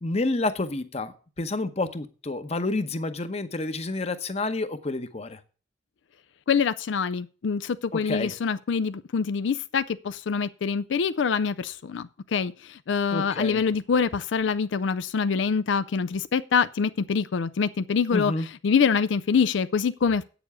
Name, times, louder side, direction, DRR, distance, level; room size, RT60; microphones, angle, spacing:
voice 1, 0.0-5.4 7.9-8.3 13.1-13.6 18.1-18.5, left 2 dB, 35° left, 0.9 m, -29 dB
voice 2, 6.5-20.2, left 6 dB, 80° left, 0.4 m, -25 dB
8.7 x 7.0 x 6.9 m
head